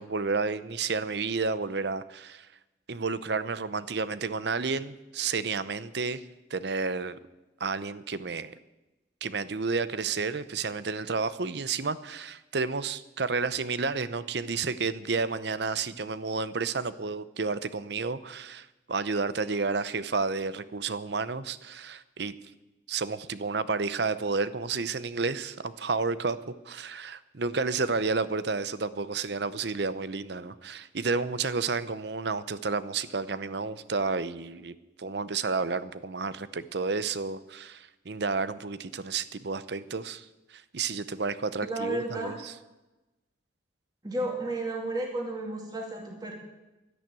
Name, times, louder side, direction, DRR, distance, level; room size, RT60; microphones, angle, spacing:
voice 1, 0.0-2.5 2.9-6.2 6.5-7.2 7.6-8.5 9.2-22.3 22.9-42.5, right 4 dB, 60° right, 15 dB, 0.7 m, -31 dB
voice 2, 41.6-42.4 44.0-46.3, right 2 dB, 20° right, 0 dB, 2.4 m, -32 dB
12.5 x 11.0 x 8.9 m, 1.0 s
head